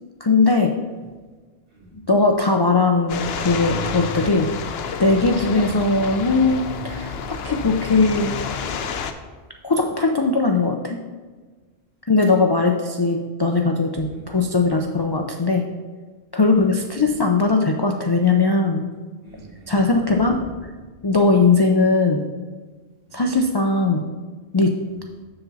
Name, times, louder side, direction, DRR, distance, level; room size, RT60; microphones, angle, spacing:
voice 1, 0.2-0.7 2.1-4.5 5.0-8.3 9.6-11.0 12.1-15.6 16.3-18.9 19.7-20.4 21.0-22.2 23.1-24.0 24.5-24.7, left 3 dB, 40° left, 3 dB, 0.3 m, -19 dB
voice 2, 1.7-2.1 7.4-8.1 9.7-9.8 13.9-14.4 16.5-16.9 19.2-20.8 23.1-23.3 24.8-25.1, right 1 dB, 60° right, -4 dB, 2.3 m, -44 dB
sound 1, 3.1-9.1, left 6 dB, 70° left, 0.8 m, -29 dB
6.9 x 6.9 x 4.0 m, 1.4 s
omnidirectional pair, 1.1 m